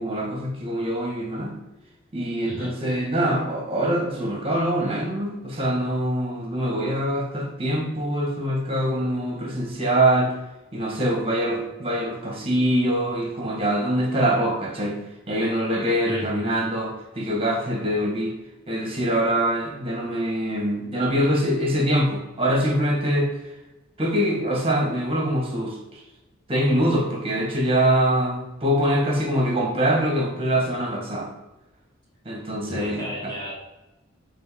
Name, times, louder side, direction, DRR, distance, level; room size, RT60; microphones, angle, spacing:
voice 1, 0.0-1.6 2.1-10.3 10.7-15.0 15.3-18.3 18.7-23.3 24.0-26.0 26.5-31.3 32.3-33.3, right 1 dB, 25° right, 0 dB, 2.1 m, -24 dB
voice 2, 16.0-16.5 32.7-33.5, left 1 dB, 25° left, -7 dB, 2.5 m, -33 dB
8.0 x 4.1 x 5.4 m, 1.0 s
head